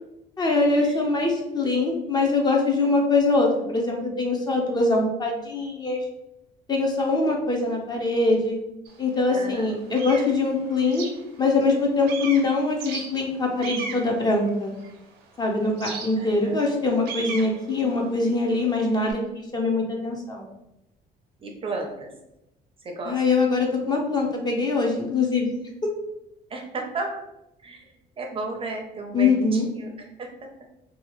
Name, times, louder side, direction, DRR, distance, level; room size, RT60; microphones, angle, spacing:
voice 1, 0.4-6.0 6.7-8.6 9.0-11.0 11.4-14.7 15.4-20.5 23.1-25.9 29.1-29.7, left 3 dB, 25° left, 1 dB, 0.6 m, -23 dB
sound 1, 8.9-9.0 9.5-11.8 12.1-15.2 15.8-19.1, right 5 dB, 85° right, 0.6 m, -37 dB
voice 2, 9.3-9.8 16.2-16.7 21.4-22.1 22.8-23.2 26.5-27.2 27.6-29.9 30.2-30.3, right 3 dB, 30° right, 2 dB, 0.5 m, -33 dB
2.7 x 2.3 x 3.0 m, 0.87 s
cardioid pair, 110°, 17 cm